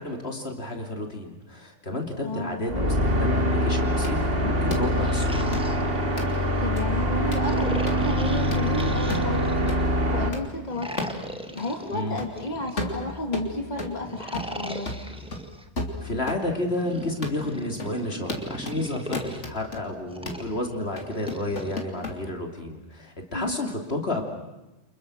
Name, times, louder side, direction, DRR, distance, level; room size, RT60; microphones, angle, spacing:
voice 1, 0.0-5.5 11.9-12.2 16.0-24.2, left 1 dB, 60° left, 2 dB, 3.2 m, -31 dB
voice 2, 2.2-3.0 6.6-9.7 10.1-11.2 11.5-14.9 23.3-23.6, left 1 dB, 35° left, 2 dB, 2.8 m, -32 dB
sound 1, 2.7-10.3, equal, 55° right, 2.6 m, -24 dB
sound 2, 4.0-4.2 4.7-4.9 5.5-5.6 6.2-6.3 6.8-6.9 7.3-7.5 7.9-8.0 8.5-8.7 9.1-9.3 9.7-9.8 10.3-10.4 11.0-11.2 11.6-11.7 12.2-12.4 12.8-14.0 14.3-14.6 14.9-16.5 16.8-16.9 17.2-17.4 17.8-18.0 18.3-18.8 19.1-19.8 20.3-20.5 21.0-22.2, left 2 dB, 75° left, 3.4 m, -33 dB
sound 3, 4.8-6.6 7.4-9.8 10.7-13.2 14.0-15.6 16.6-19.4 20.1-21.8, right 1 dB, 5° right, 1.4 m, -39 dB
29.5 x 27.0 x 6.4 m, 0.99 s
omnidirectional pair, 1.2 m